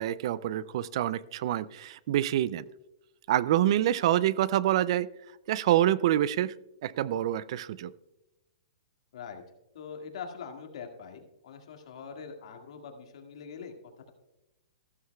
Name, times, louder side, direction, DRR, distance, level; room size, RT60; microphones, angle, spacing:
voice 1, 0.0-2.7 3.3-5.1 5.5-6.5 6.8-7.9, right 12 dB, 50° right, 19 dB, 0.4 m, -26 dB
voice 2, 9.1-9.4 9.7-13.7, left 6 dB, 65° left, 4 dB, 1.9 m, -43 dB
14.5 x 12.5 x 2.3 m, 0.95 s
hypercardioid pair, 150°, 4 cm